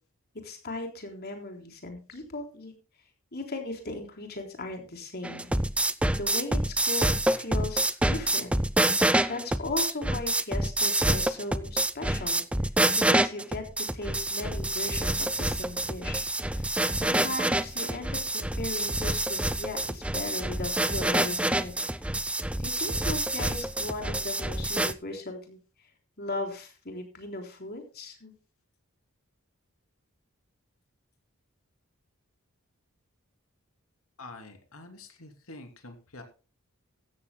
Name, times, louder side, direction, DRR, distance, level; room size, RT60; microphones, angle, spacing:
voice 1, 0.4-2.7 3.3-5.5 5.8-8.5 8.9-12.4 13.0-21.7 22.6-25.6 26.2-28.3, left 2 dB, 45° left, 4 dB, 3.8 m, -37 dB
sound 1, 5.2-24.9, right 1 dB, 5° right, 0.5 m, -27 dB
voice 2, 34.2-36.2, left 2 dB, 75° left, 5 dB, 3.0 m, -46 dB
16.0 x 14.0 x 2.2 m, 0.34 s
head